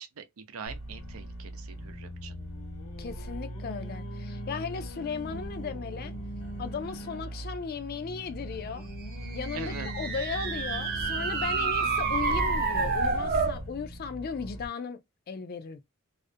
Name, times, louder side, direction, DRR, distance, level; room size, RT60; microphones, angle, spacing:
voice 1, 0.0-2.4 9.5-9.9, right 5 dB, 90° right, 0.5 m, -43 dB
sound 1, 0.7-14.7, equal, 70° left, 1.0 m, -40 dB
Singing, 1.9-7.3 7.9-11.8, equal, 85° left, 0.6 m, -45 dB
voice 2, 3.0-6.1 6.6-8.9 9.3-15.0 15.3-15.8, left 5 dB, 45° left, 0.4 m, -36 dB
sound 2, 9.2-13.6, right 4 dB, 45° right, 0.5 m, -29 dB
2.4 x 2.1 x 2.6 m
head